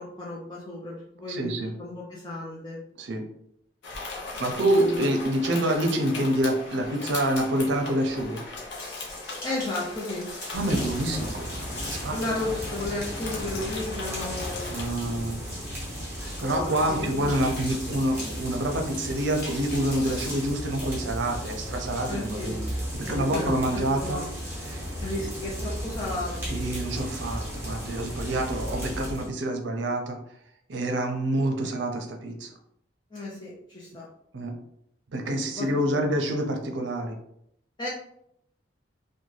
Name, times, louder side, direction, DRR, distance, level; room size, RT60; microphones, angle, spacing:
voice 1, 0.0-2.8 4.6-5.1 9.4-10.3 12.1-14.7 16.4-17.5 22.1-22.5 23.0-24.3 25.0-26.5 33.1-34.1 35.5-36.0 37.8-37.9, left 2 dB, 25° left, -6 dB, 0.4 m, -34 dB
voice 2, 1.3-1.7 3.0-3.2 4.4-8.4 10.5-11.5 11.9-12.2 14.7-15.4 16.2-22.7 22.9-24.2 24.6-24.9 26.5-30.2 30.7-32.5 34.3-34.6 35.1-37.1, right 1 dB, 70° right, 3 dB, 0.5 m, -27 dB
sound 1, 3.8-14.9, left 3 dB, 70° left, 0.6 m, -38 dB
sound 2, 8.7-20.4, left 1 dB, 50° left, 1.1 m, -42 dB
sound 3, 10.5-29.3, equal, 10° right, 0.7 m, -35 dB
2.6 x 2.1 x 3.1 m, 0.74 s
head